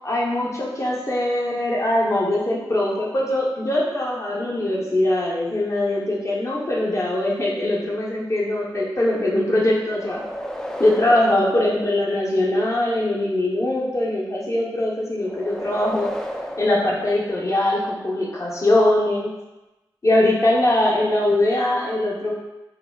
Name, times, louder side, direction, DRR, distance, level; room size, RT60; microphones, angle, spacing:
voice 1, 0.0-10.2 10.8-16.1 16.6-19.3 20.0-22.3, left 1 dB, 35° left, -4 dB, 0.8 m, -21 dB
sound 1, 9.8-12.6 15.2-17.9, equal, 5° left, 0.3 m, -34 dB
3.7 x 2.1 x 2.2 m, 1.0 s
cardioid pair, 50°, 8 cm